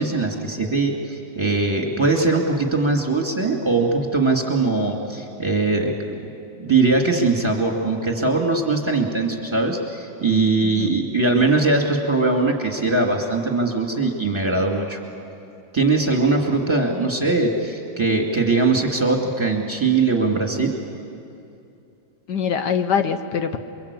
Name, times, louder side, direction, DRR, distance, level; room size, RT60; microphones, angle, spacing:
voice 1, 0.0-6.2 6.6-15.0 15.7-20.7, right 3 dB, 15° right, 1 dB, 2.6 m, -21 dB
voice 2, 10.6-11.0 16.9-17.1 22.3-23.6, left 7 dB, 70° left, 8 dB, 1.5 m, -24 dB
28.5 x 23.5 x 8.5 m, 2.7 s
omnidirectional pair, 1.9 m